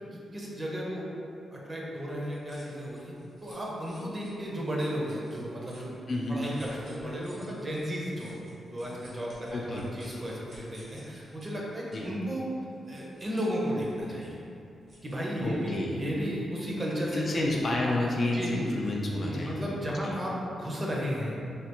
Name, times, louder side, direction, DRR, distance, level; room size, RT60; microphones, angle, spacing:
voice 1, 0.1-1.2 1.5-3.1 3.4-5.9 6.3-8.4 8.7-12.4 12.9-14.4 15.0-17.6 18.3-18.7 19.2-21.4, equal, 30° right, -4 dB, 0.6 m, -34 dB
sound 1, 2.1-16.0, right 1 dB, 65° right, 1.1 m, -56 dB
voice 2, 6.1-6.4 9.5-9.8 11.9-12.1 15.4-16.0 17.1-19.7 20.0-20.1, left 2 dB, 45° left, -2 dB, 0.3 m, -30 dB
3.3 x 2.3 x 2.9 m, 2.6 s
cardioid pair, 90°, 0 cm